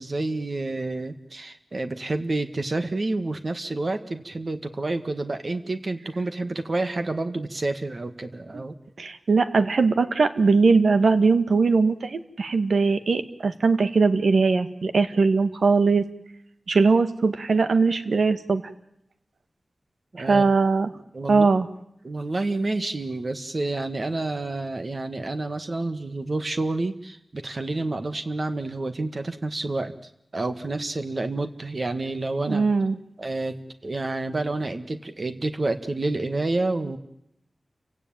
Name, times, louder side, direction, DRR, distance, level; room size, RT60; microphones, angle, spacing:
voice 1, 0.0-8.7 20.1-20.4 20.9-21.5 22.0-29.9 30.3-32.7 33.2-33.6 33.8-37.0, right 2 dB, 50° right, 8 dB, 1.6 m, -29 dB
voice 2, 9.0-16.0 16.7-18.6 20.2-20.9 21.3-21.7 32.5-33.0, right 4 dB, 85° right, 10 dB, 1.8 m, -20 dB
29.0 x 17.0 x 8.9 m, 0.78 s
wide cardioid pair, 80°, 0 cm